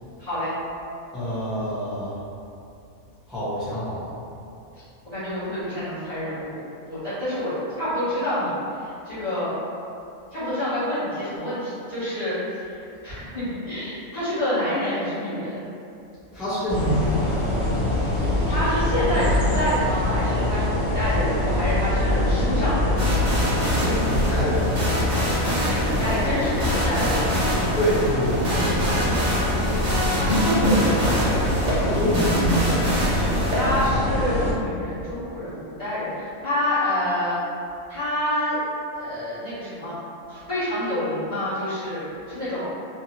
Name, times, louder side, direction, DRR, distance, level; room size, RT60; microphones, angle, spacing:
voice 1, 0.2-0.5 5.1-6.6 6.9-9.5 10.3-12.4 13.0-15.6 18.2-23.2 25.6-27.7 30.2-31.5 33.5-37.4 37.9-38.6 38.9-39.9 40.3-42.7, left 1 dB, 30° left, -15 dB, 1.0 m, -27 dB
voice 2, 1.1-2.2 3.3-4.1 16.3-17.3 23.8-24.9 27.7-29.3 31.8-32.3, equal, ahead, -14 dB, 0.7 m, -27 dB
sound 1, 16.7-34.5, left 1 dB, 55° left, 0.5 m, -24 dB
sound 2, 23.0-33.9, equal, 40° right, 0.7 m, -26 dB
2.7 x 2.6 x 2.8 m, 2.6 s
omnidirectional pair, 1.5 m